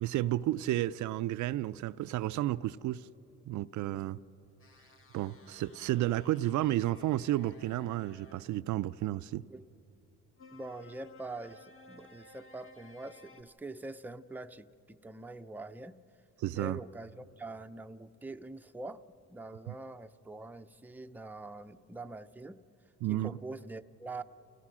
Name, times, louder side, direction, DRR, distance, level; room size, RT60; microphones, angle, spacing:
voice 1, 0.0-3.1 3.5-4.2 5.1-9.5 16.4-16.8 19.7-19.8 23.0-23.3, right 15 dB, 75° right, 0.5 m, -32 dB
sound 1, 4.6-8.4 10.4-13.4, left 2 dB, 45° left, 1.6 m, -57 dB
voice 2, 10.5-16.0 16.5-19.0 19.3-22.6 23.1-24.2, right 2 dB, 5° right, 0.5 m, -44 dB
29.0 x 17.5 x 6.1 m
cardioid pair, 90°, 30 cm